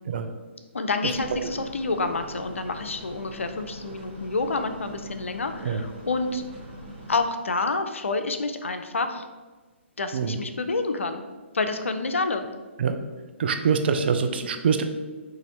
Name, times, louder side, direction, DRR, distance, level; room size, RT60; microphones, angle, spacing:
voice 1, 0.7-6.4 7.1-9.3 10.0-11.2 11.5-12.4, left 3 dB, 75° left, 8 dB, 0.4 m, -28 dB
sound 1, 1.1-7.3, right 1 dB, 25° right, 0.8 m, -42 dB
voice 2, 13.4-14.8, right 6 dB, 50° right, 7 dB, 0.4 m, -24 dB
4.0 x 2.5 x 2.8 m, 1.3 s
figure-of-eight pair, 130°, 7 cm